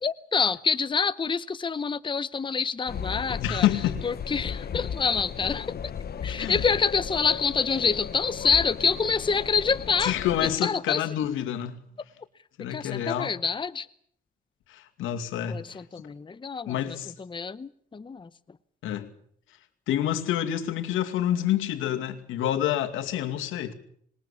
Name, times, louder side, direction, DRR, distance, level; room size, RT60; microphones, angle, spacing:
voice 1, 0.0-3.7 4.0-5.7 6.2-10.1 10.6-11.0 12.6-13.9 15.5-18.3, left 5 dB, 25° left, 0.9 m, -27 dB
sound 1, 2.9-10.6, left 7 dB, 50° left, 1.3 m, -35 dB
voice 2, 3.4-4.1 6.3-6.6 10.0-11.8 12.6-13.3 14.7-15.8 16.7-17.1 18.8-19.1 19.9-23.7, left 11 dB, 90° left, 2.4 m, -28 dB
26.5 x 21.0 x 7.2 m
cardioid pair, 90°, 20 cm